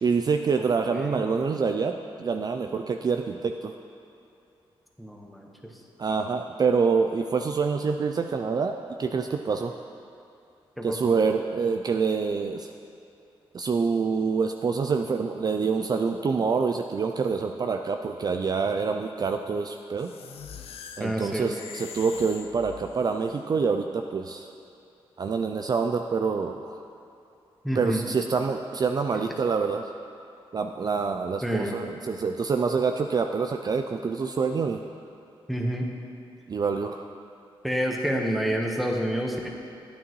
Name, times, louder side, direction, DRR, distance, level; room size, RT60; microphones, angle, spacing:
voice 1, 0.0-3.7 6.0-9.7 10.8-12.7 13.5-20.1 21.0-24.5 25.2-26.8 27.8-29.8 30.5-34.8 36.5-37.1, right 5 dB, 40° right, 5 dB, 0.4 m, -26 dB
voice 2, 0.9-1.2 5.0-5.5 10.8-11.1 21.0-21.5 27.6-28.0 31.4-31.8 35.5-35.9 37.6-39.5, equal, ahead, 0 dB, 1.2 m, -28 dB
sound 1, 20.0-23.2, left 7 dB, 85° left, 0.5 m, -43 dB
10.0 x 9.0 x 3.1 m, 2.6 s
cardioid pair, 75°, 10 cm